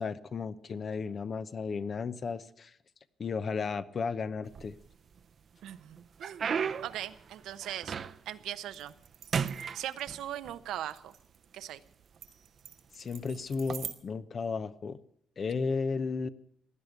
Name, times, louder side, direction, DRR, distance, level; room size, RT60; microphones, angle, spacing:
voice 1, 0.0-2.7 3.2-4.8 12.9-15.0 15.4-16.3, left 5 dB, 45° left, 14 dB, 0.8 m, -34 dB
sound 1, 4.4-5.2 5.7-8.4 8.8-9.1 9.3-10.6 11.4-11.5 12.2-12.4 13.5-13.7, right 7 dB, 50° right, 0.7 m, -35 dB
voice 2, 5.6-6.5 6.8-7.9 8.3-8.9 9.7-11.1 11.5-11.8, right 12 dB, 90° right, 12 dB, 0.9 m, -39 dB
sound 2, 8.7-13.9, right 9 dB, 70° right, 1.8 m, -47 dB
16.5 x 10.5 x 8.1 m, 0.69 s
cardioid pair, 105°, 0 cm